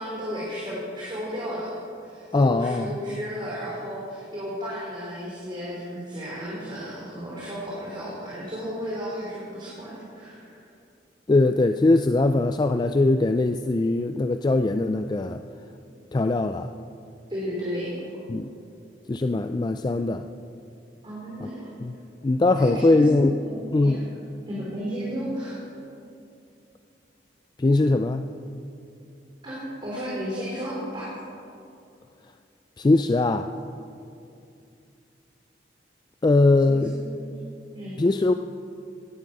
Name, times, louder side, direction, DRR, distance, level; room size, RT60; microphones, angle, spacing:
voice 1, 0.0-10.6 17.3-17.9 21.0-21.7 22.5-24.0 24.5-25.6 29.4-31.1 36.6-37.4 37.7-38.0, equal, 30° right, -6 dB, 2.9 m, -33 dB
voice 2, 2.3-2.9 11.3-15.4 16.1-16.7 18.3-18.5 19.1-20.2 21.4-21.5 21.8-22.0 22.2-23.3 23.7-24.1 27.6-28.3 32.8-33.5 36.2-36.9 38.0-38.3, left 2 dB, 25° left, 7 dB, 0.3 m, -21 dB
17.0 x 11.0 x 5.4 m, 2.5 s
head